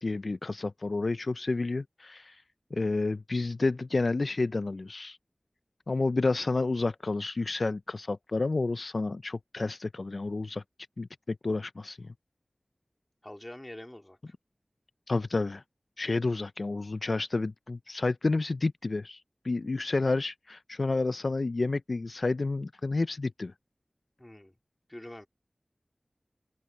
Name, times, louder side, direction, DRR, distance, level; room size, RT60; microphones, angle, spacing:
voice 1, 0.0-2.4 2.7-5.2 5.9-10.6 11.0-12.1 15.1-15.6 16.0-23.5, left 3 dB, 75° left, 0.4 m, -30 dB
voice 2, 13.2-14.2 24.2-24.6 24.9-25.3, left 1 dB, 25° left, 3.7 m, -45 dB
open air
wide cardioid pair, 45°, 0 cm